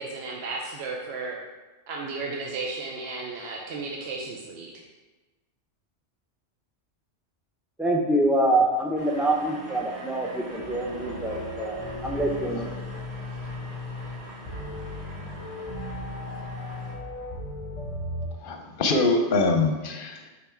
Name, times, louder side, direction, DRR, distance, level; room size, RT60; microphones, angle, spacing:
voice 1, 0.0-1.4 1.9-4.7, right 3 dB, 70° right, 0 dB, 0.9 m, -34 dB
voice 2, 7.8-11.8 12.0-12.8, right 1 dB, ahead, 0 dB, 0.4 m, -25 dB
sound 1, 9.0-17.0, right 2 dB, 50° right, 1.5 m, -44 dB
sound 2, 10.5-18.3, left 2 dB, 30° right, 1.8 m, -36 dB
voice 3, 18.4-20.3, left 3 dB, 55° left, 4 dB, 0.8 m, -24 dB
5.6 x 4.0 x 4.5 m, 1.2 s
omnidirectional pair, 1.2 m